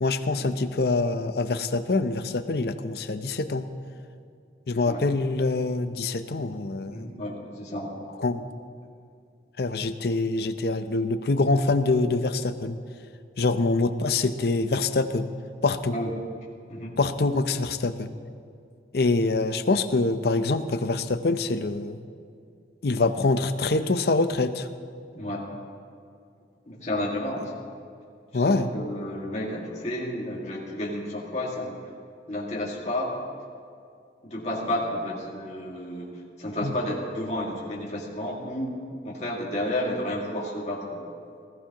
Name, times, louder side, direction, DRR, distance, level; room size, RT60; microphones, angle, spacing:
voice 1, 0.0-3.6 4.7-7.0 8.2-8.5 9.6-12.8 13.4-15.3 15.6-16.0 17.0-18.1 18.9-22.0 22.8-24.7 28.3-28.7 36.6-36.7, left 3 dB, 60° left, 10 dB, 0.6 m, -25 dB
voice 2, 6.9-7.9 15.9-16.2 16.7-17.0 25.1-25.4 26.7-27.6 28.3-31.8 32.3-33.2 34.2-38.7 39.0-41.1, left 1 dB, 40° left, -4 dB, 2.1 m, -31 dB
20.0 x 14.5 x 3.0 m, 2.4 s
head